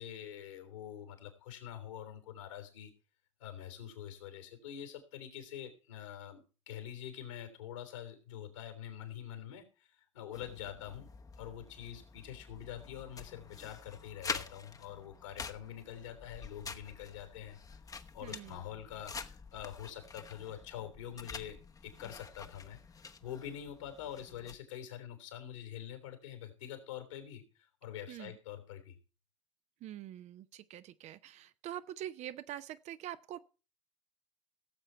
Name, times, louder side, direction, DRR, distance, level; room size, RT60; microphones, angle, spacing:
voice 1, 0.0-2.9 3.4-6.4 6.7-11.1 11.4-17.6 18.1-21.6 21.8-22.8 23.2-28.9, left 10 dB, 75° left, 6 dB, 3.4 m, -45 dB
sound 1, 10.3-24.6, left 5 dB, 20° left, 1.0 m, -47 dB
voice 2, 18.2-18.6 28.1-28.4 29.8-33.4, right 12 dB, 45° right, 13 dB, 0.8 m, -45 dB
17.5 x 7.7 x 4.5 m, 0.35 s
figure-of-eight pair, 70°, 16 cm